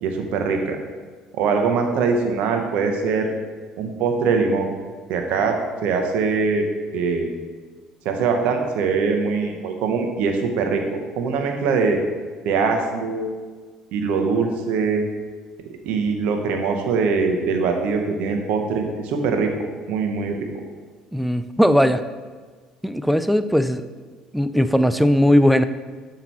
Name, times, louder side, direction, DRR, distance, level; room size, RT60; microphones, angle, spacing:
voice 1, 0.0-0.8 1.4-3.3 3.8-4.7 5.1-5.6 5.8-6.6 6.9-7.3 8.0-12.0 12.4-13.3 13.9-15.0 15.8-19.5 19.9-20.4, right 5 dB, 70° right, 4 dB, 0.7 m, -22 dB
voice 2, 21.1-22.0 22.8-23.8 24.3-25.6, equal, ahead, 11 dB, 0.3 m, -18 dB
6.9 x 2.9 x 4.6 m, 1.5 s
hypercardioid pair, 70°, 2 cm